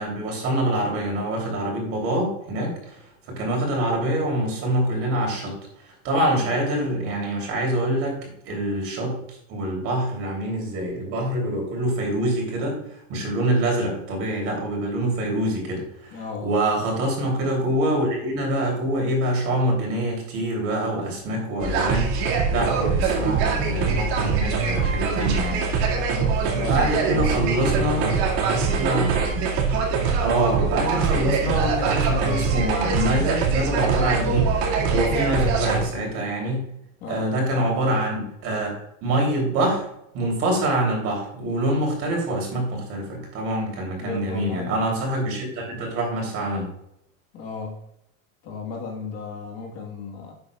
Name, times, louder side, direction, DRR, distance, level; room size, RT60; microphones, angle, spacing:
voice 1, 0.0-5.5 5.8-8.2 8.4-25.6 26.0-26.1 26.7-29.2 30.2-36.7 37.1-39.8 40.1-46.7, right 1 dB, 35° right, -1 dB, 3.0 m, -25 dB
voice 2, 16.1-16.6 26.1-27.7 34.9-35.1 37.0-37.3 44.0-44.7 47.3-47.8 48.4-50.3, left 4 dB, 40° left, 0 dB, 1.5 m, -35 dB
sound 1, 21.6-35.8, right 5 dB, 50° right, 2.1 m, -23 dB
11.5 x 7.7 x 2.3 m, 0.78 s
supercardioid pair, 170°, 40 cm